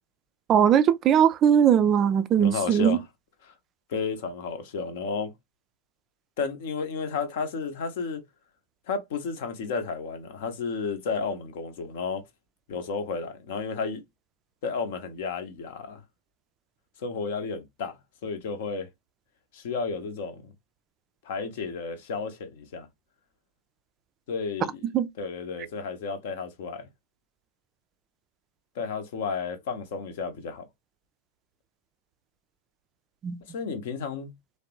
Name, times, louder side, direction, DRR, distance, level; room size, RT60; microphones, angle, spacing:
voice 1, 0.5-3.0 24.9-25.1 33.2-33.4, right 8 dB, 30° right, 0.3 m, -20 dB
voice 2, 2.4-3.0 3.4-3.5 3.9-5.3 6.4-8.2 8.9-12.2 12.7-14.0 14.6-16.0 17.0-18.9 19.5-20.5 21.2-22.9 24.3-24.9 25.2-26.9 28.8-30.6 33.5-34.3, left 5 dB, 55° left, 0.7 m, -32 dB
3.2 x 2.1 x 2.9 m
figure-of-eight pair, 90°, 0 cm